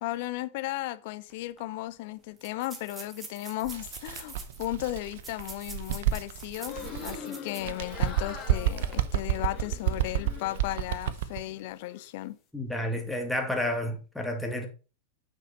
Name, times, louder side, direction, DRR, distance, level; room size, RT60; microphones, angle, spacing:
voice 1, 0.0-12.4, left 16 dB, 50° left, 0.8 m, -35 dB
sound 1, 1.3-1.4 1.6-1.7 2.4-7.8 8.2-8.3 8.8-8.9, right 3 dB, 15° right, 2.2 m, -46 dB
Bird, 3.6-7.2 7.6-11.4, right 11 dB, 55° right, 0.9 m, -30 dB
sound 2, 6.5-11.0 11.3-12.1, left 6 dB, 30° left, 2.8 m, -44 dB
voice 2, 12.5-14.7, left 1 dB, 5° left, 2.3 m, -30 dB
9.3 x 6.5 x 4.3 m
figure-of-eight pair, 90°, 0 cm